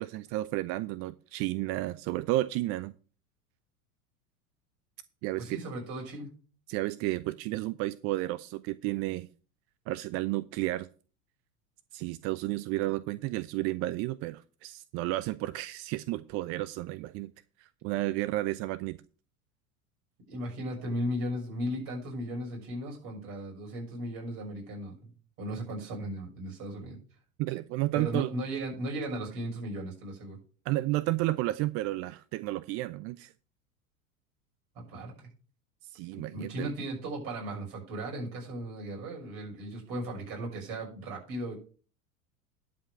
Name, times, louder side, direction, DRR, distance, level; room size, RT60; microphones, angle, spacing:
voice 1, 0.0-3.0 5.2-5.6 6.7-9.3 9.9-10.9 11.9-17.3 17.6-19.0 27.4-28.3 30.7-33.3 35.8-36.7, right 17 dB, 35° right, 0.4 m, -32 dB
voice 2, 5.4-6.3 20.3-25.1 25.4-27.0 27.9-30.4 34.9-35.3 36.1-41.5, right 1 dB, 50° right, 6.3 m, -36 dB
11.5 x 5.2 x 6.4 m
figure-of-eight pair, 85°, 44 cm